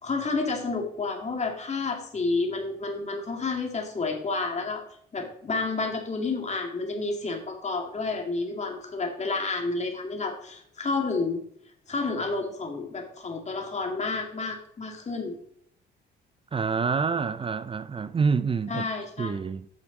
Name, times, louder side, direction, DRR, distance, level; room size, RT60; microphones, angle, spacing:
voice 1, 0.0-4.8 5.1-11.4 11.9-15.4 18.7-19.3, left 3 dB, 35° left, 2.2 m, -30 dB
voice 2, 16.5-18.9 19.2-19.7, right 5 dB, 25° right, 0.4 m, -27 dB
8.7 x 6.0 x 5.3 m
cardioid pair, 90°, 20 cm